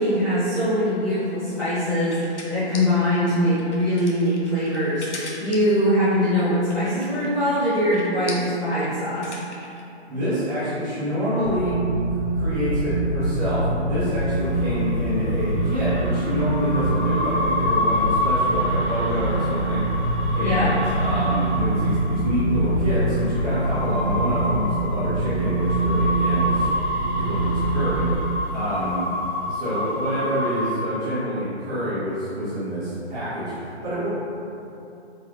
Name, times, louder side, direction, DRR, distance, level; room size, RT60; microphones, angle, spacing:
voice 1, 0.0-9.4 20.4-20.7, equal, 20° left, -17 dB, 1.0 m, -22 dB
sound 1, 1.1-9.8, left 3 dB, 85° left, 0.8 m, -40 dB
voice 2, 10.1-11.7 12.3-26.7 27.1-28.1 28.5-29.1 29.5-34.1, equal, 10° right, -12 dB, 0.8 m, -27 dB
sound 2, 11.4-28.2, right 2 dB, 40° right, 1.1 m, -25 dB
sound 3, 14.4-30.8, left 1 dB, 45° left, 0.5 m, -29 dB
3.8 x 2.7 x 3.4 m, 2.8 s
figure-of-eight pair, 145°, 34 cm